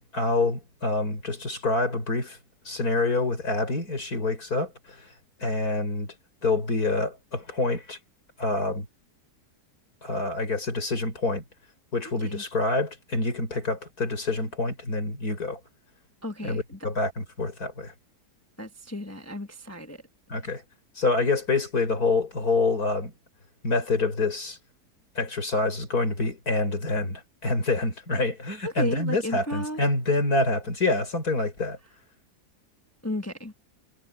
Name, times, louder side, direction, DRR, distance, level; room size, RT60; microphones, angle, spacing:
voice 1, 0.0-2.4 2.7-5.1 5.4-6.1 6.4-8.0 8.4-8.9 10.0-11.4 11.9-15.6 16.4-17.9 20.3-20.6 21.0-23.1 23.6-24.6 25.2-31.8, left 3 dB, 65° left, 5.8 m, -27 dB
voice 2, 16.2-16.8 18.6-20.0 28.6-29.8 33.0-33.5, left 1 dB, 10° left, 1.3 m, -34 dB
omnidirectional pair, 1.7 m